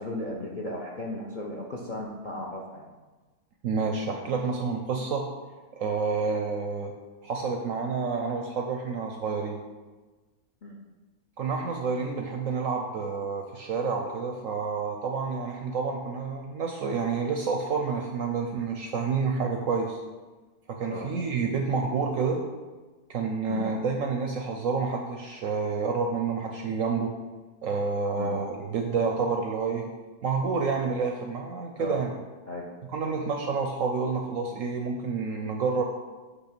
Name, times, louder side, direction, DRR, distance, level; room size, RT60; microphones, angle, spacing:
voice 1, 0.0-2.9 10.6-10.8 20.9-21.1 23.5-23.7 28.2-28.3 31.8-32.0 32.5-32.7 33.0-33.2, left 1 dB, 45° left, -1 dB, 0.6 m, -36 dB
voice 2, 3.6-5.3 5.5-6.9 7.2-9.6 11.4-20.0 20.7-22.5 23.1-27.2 27.6-29.9 30.2-32.1 32.9-35.8, right 4 dB, 65° right, 3 dB, 0.8 m, -29 dB
7.9 x 3.4 x 5.9 m, 1.3 s
omnidirectional pair, 1.9 m